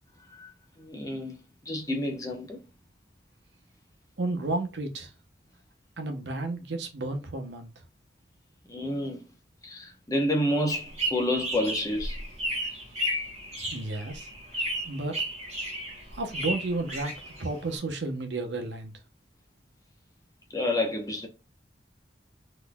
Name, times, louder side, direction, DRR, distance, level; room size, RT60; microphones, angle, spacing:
voice 1, 0.8-1.4 1.7-2.6 8.7-9.2 9.6-12.2 20.5-21.3, left 1 dB, 20° left, 0.8 m, -29 dB
voice 2, 4.2-5.1 6.0-7.7 8.8-8.9 13.6-14.3 14.9-15.2 16.1-17.1 17.4-18.9, right 2 dB, 85° right, 0.9 m, -32 dB
sound 1, 10.7-17.8, equal, 40° right, 1.6 m, -33 dB
4.0 x 3.1 x 2.2 m
head